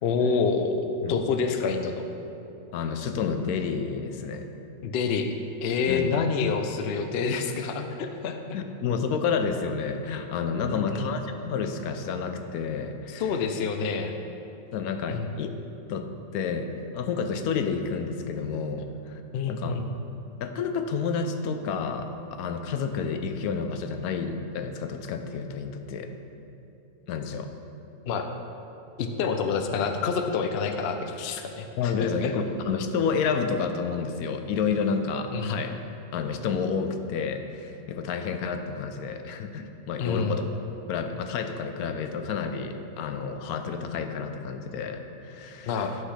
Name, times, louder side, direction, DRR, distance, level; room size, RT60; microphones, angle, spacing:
voice 1, 0.0-2.1 4.8-5.3 5.6-8.6 10.7-11.1 13.1-14.2 15.1-15.3 19.3-19.9 28.1-28.3 29.0-32.3 35.3-35.5 40.0-40.4 45.7-45.9, left 5 dB, 65° left, 6 dB, 0.6 m, -28 dB
voice 2, 2.7-4.5 5.9-6.2 8.5-13.3 14.7-16.1 16.3-16.7 16.9-19.2 19.5-19.8 20.4-22.1 22.4-26.1 27.1-27.5 31.8-35.8 36.1-40.5 40.9-45.8, left 5 dB, 80° left, 7 dB, 1.1 m, -30 dB
10.5 x 5.6 x 3.3 m, 2.8 s
omnidirectional pair, 1.5 m